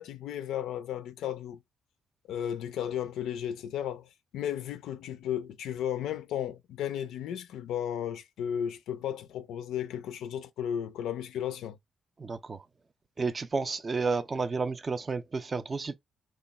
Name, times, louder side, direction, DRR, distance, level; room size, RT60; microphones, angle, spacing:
voice 1, 0.0-1.6 2.3-11.8, left 9 dB, 90° left, 0.3 m, -34 dB
voice 2, 12.2-12.6 13.2-15.9, right 4 dB, 25° right, 0.3 m, -31 dB
3.0 x 2.2 x 4.0 m
cardioid pair, 125°, 0 cm